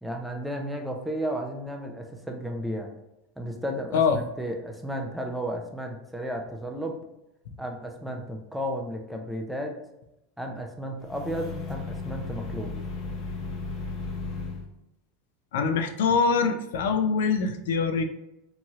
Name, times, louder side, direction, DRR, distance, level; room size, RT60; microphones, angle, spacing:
voice 1, 0.0-2.9 3.4-7.0 7.6-9.8 10.4-12.7, equal, ahead, 2 dB, 0.3 m, -33 dB
sound 1, 11.0-14.6, left 3 dB, 35° left, 0.6 m, -35 dB
voice 2, 15.5-18.0, left 5 dB, 90° left, 7 dB, 0.3 m, -24 dB
2.9 x 2.8 x 2.3 m, 0.88 s
supercardioid pair, 160°, 0 cm